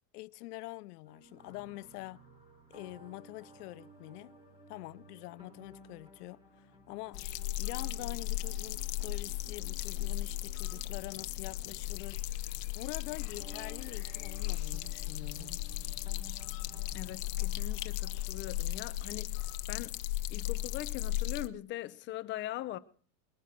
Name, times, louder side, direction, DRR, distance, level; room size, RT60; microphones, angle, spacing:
voice 1, 0.1-2.2 2.7-4.3 4.7-7.3 7.6-15.5, left 20 dB, 75° left, 0.6 m, -45 dB
sound 1, 1.0-18.6, right 1 dB, 10° right, 4.3 m, -56 dB
sound 2, 7.1-21.5, left 15 dB, 60° left, 0.9 m, -36 dB
voice 2, 16.9-19.4 19.7-20.0 20.3-22.8, left 14 dB, 25° left, 0.6 m, -41 dB
21.0 x 9.3 x 5.9 m
supercardioid pair, 150°, 47 cm